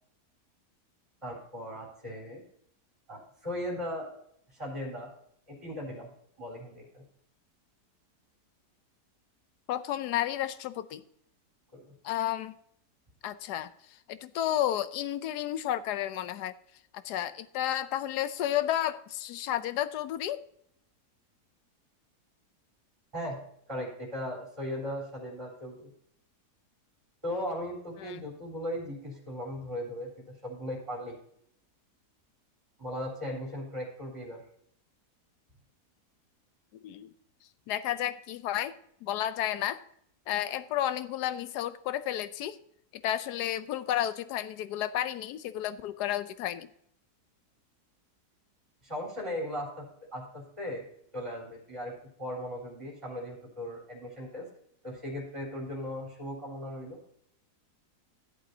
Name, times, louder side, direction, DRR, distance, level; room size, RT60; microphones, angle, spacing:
voice 1, 1.2-2.4 3.1-4.1 4.5-5.1 5.5-6.1 6.4-7.0 11.7-11.9 23.1-23.4 23.7-25.9 27.2-31.2 32.8-34.4 48.8-49.8 50.1-50.8 51.1-54.4 54.8-57.0, left 1 dB, 15° right, -2 dB, 3.9 m, -37 dB
voice 2, 9.7-11.0 12.0-12.5 13.2-13.7 14.1-16.5 17.0-20.4 28.0-28.2 36.8-37.1 37.7-38.7 39.0-39.8 40.3-42.6 42.9-46.7, left 12 dB, 80° left, 13 dB, 1.2 m, -32 dB
15.0 x 8.3 x 2.7 m, 0.68 s
omnidirectional pair, 1.7 m